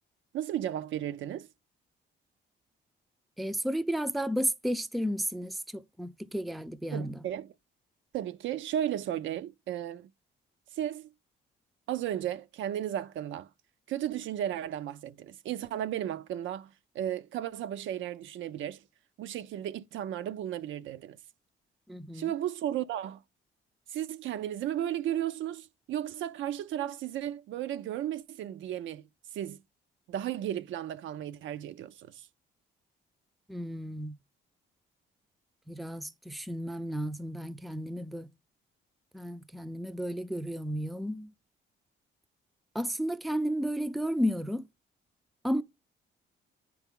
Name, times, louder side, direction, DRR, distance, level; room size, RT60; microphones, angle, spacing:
voice 1, 0.3-1.5 6.9-7.5 8.1-10.1 10.7-11.1 11.9-13.5 13.9-18.8 19.2-21.2 22.1-23.2 23.9-29.1 29.3-29.6 30.1-32.3, right 11 dB, 75° right, 0.5 m, -34 dB
voice 2, 3.4-7.2 21.9-22.3 33.5-34.2 35.7-38.3 39.1-41.3 42.7-44.6 45.4-45.6, equal, ahead, 0.4 m, -33 dB
9.0 x 4.7 x 3.6 m
cardioid pair, 90°, 20 cm